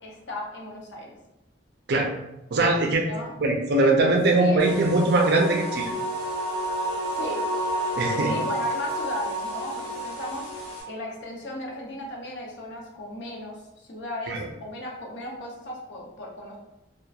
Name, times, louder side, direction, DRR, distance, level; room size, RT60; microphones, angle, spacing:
voice 1, 0.0-1.2 3.0-3.3 4.3-4.6 7.1-7.4 8.2-10.5 10.8-13.6 13.9-16.6, left 1 dB, 75° left, -2 dB, 0.7 m, -36 dB
voice 2, 2.5-3.1 3.4-5.9 8.0-8.3 14.3-14.4, right 2 dB, 60° right, 2 dB, 0.4 m, -21 dB
sound 1, 4.6-10.8, right 1 dB, 35° left, 1.3 m, -30 dB
2.8 x 2.2 x 2.3 m, 0.89 s
head